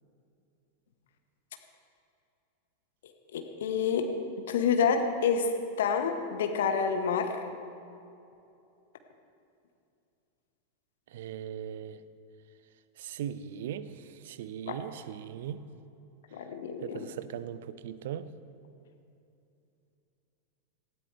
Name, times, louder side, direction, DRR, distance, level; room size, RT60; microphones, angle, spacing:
voice 1, 3.3-4.1 4.5-5.5 5.8-7.4 14.7-14.8 16.3-17.1, left 6 dB, 60° left, 6 dB, 1.1 m, -28 dB
voice 2, 11.1-12.0 13.0-13.9 14.2-15.6 16.8-18.3, right 9 dB, 55° right, 15 dB, 0.6 m, -38 dB
19.0 x 16.0 x 3.3 m, 2.7 s
figure-of-eight pair, 90°, 0 cm